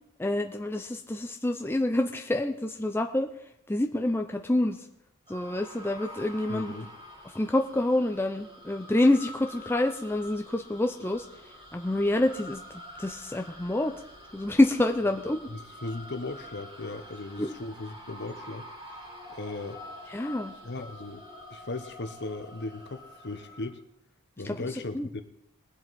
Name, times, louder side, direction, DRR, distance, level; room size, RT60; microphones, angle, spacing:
voice 1, 0.2-3.3 3.7-4.9 5.3-6.7 7.2-12.6 13.0-13.9 14.3-15.5 17.4-17.6 20.1-20.5 24.4-24.7 24.9-25.1, left 1 dB, 10° left, 4 dB, 0.5 m, -27 dB
sound 1, 5.3-23.7, left 1 dB, 25° right, 3.9 m, -47 dB
voice 2, 6.5-6.9 15.5-18.7 19.3-19.8 20.6-21.2 21.5-23.8 24.4-25.2, left 2 dB, 50° left, 9 dB, 1.1 m, -37 dB
21.5 x 7.8 x 4.2 m, 0.75 s
head